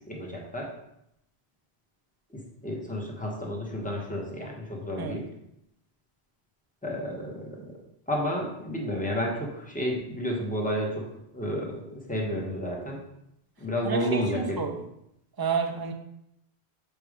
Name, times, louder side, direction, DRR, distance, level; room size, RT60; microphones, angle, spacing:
voice 1, 0.1-0.7 2.3-5.2 6.8-7.7 8.1-11.0 11.3-13.0 13.6-14.6, equal, 10° left, -2 dB, 1.1 m, -31 dB
voice 2, 13.8-14.9 15.4-15.9, right 5 dB, 25° right, 4 dB, 0.5 m, -30 dB
6.9 x 3.4 x 5.0 m, 0.79 s
omnidirectional pair, 1.1 m